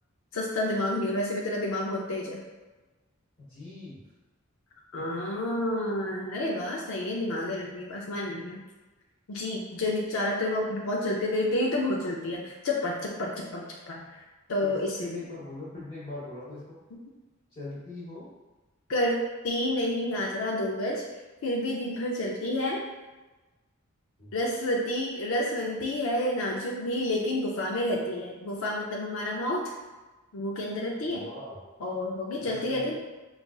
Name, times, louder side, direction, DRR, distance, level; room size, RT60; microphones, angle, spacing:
voice 1, 0.3-2.4 4.9-8.6 9.3-14.2 14.5-15.1 18.9-21.0 21.4-22.8 24.3-29.6 30.3-31.2 31.8-32.9, left 1 dB, 85° left, -2 dB, 0.5 m, -29 dB
voice 2, 3.4-4.0 14.6-16.8 17.5-18.3 24.2-24.4 31.0-31.6 32.4-32.9, left 2 dB, 35° left, -10 dB, 0.8 m, -41 dB
5.0 x 2.4 x 2.3 m, 1.2 s
head